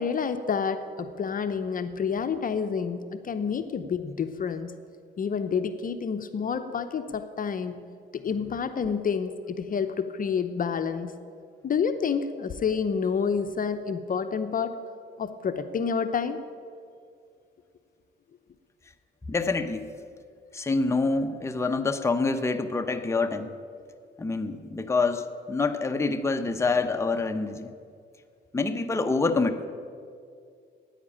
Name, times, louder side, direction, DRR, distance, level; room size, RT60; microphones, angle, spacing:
voice 1, 0.0-4.7 5.2-7.8 8.1-11.1 11.6-14.8 15.2-16.4, left 6 dB, 45° left, 9 dB, 0.8 m, -29 dB
voice 2, 19.3-19.9 20.5-23.5 24.2-27.7 28.5-29.7, left 3 dB, 15° left, 6 dB, 0.8 m, -26 dB
10.0 x 9.6 x 8.6 m, 2.3 s
cardioid pair, 90°, 20 cm